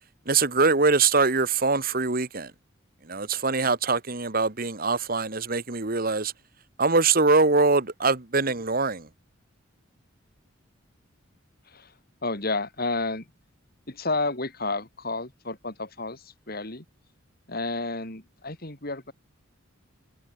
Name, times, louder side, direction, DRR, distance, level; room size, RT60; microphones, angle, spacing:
voice 1, 0.2-2.5 3.0-6.3 6.8-9.1, right 4 dB, 45° right, 1.7 m, -23 dB
voice 2, 12.2-13.3 13.9-16.8 17.5-19.1, left 3 dB, 50° left, 4.3 m, -31 dB
head